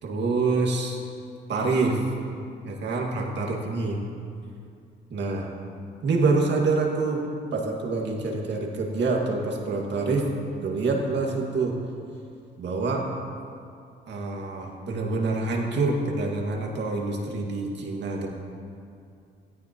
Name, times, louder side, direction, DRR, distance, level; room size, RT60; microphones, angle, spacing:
voice 1, 0.0-1.0 1.5-2.0 2.6-4.0 5.1-5.5 6.0-7.2 7.5-10.3 10.6-11.8 12.6-13.1 14.1-18.3, right 3 dB, 60° right, 0 dB, 2.1 m, -26 dB
16.5 x 14.0 x 3.1 m, 2.5 s
cardioid pair, 90°, 20 cm